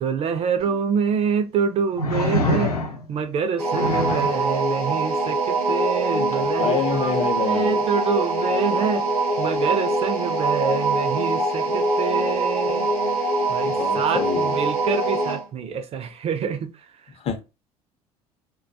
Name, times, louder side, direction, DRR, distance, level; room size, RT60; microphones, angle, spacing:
voice 1, 0.0-2.7 3.1-5.4 5.7-7.1 7.5-9.0 9.4-12.9 13.5-14.2 14.6-16.6, right 6 dB, 35° right, 0.4 m, -26 dB
sound 1, 0.6-0.7 2.0-3.2 3.7-4.4 6.3-6.4, left 1 dB, 80° left, 0.4 m, -25 dB
sound 2, 3.6-15.5, right 2 dB, 90° right, 0.8 m, -23 dB
voice 2, 6.5-7.9 13.7-14.8 17.1-17.4, left 6 dB, 30° left, 0.6 m, -27 dB
2.2 x 2.1 x 2.6 m
figure-of-eight pair, 60°, 19 cm